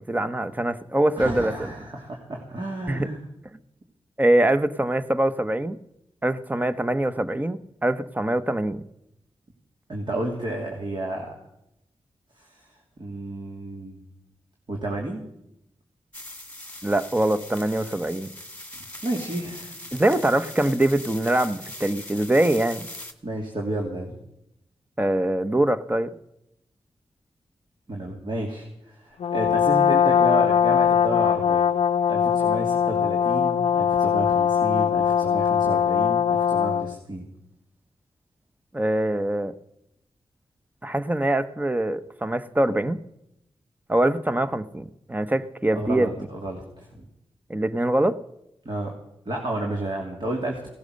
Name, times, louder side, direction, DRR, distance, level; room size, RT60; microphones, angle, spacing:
voice 1, 0.1-1.7 2.9-3.1 4.2-5.8 6.2-8.8 16.8-18.3 19.9-22.9 25.0-26.1 38.7-39.5 40.8-43.0 43.9-46.1 47.5-48.2, right 1 dB, 15° right, 12 dB, 1.0 m, -23 dB
voice 2, 1.2-3.2 9.9-11.4 12.4-12.7 13.0-14.0 14.7-15.2 19.0-19.8 23.2-24.2 27.9-31.7 32.1-37.2 45.7-47.0 48.6-48.9 49.2-50.7, right 1 dB, 50° right, 0 dB, 3.0 m, -31 dB
sound 1, 16.1-23.1, left 1 dB, 10° left, 2.1 m, -40 dB
Brass instrument, 29.2-37.0, left 8 dB, 85° left, 0.5 m, -21 dB
17.5 x 12.0 x 6.6 m, 0.83 s
cardioid pair, 55°, 10 cm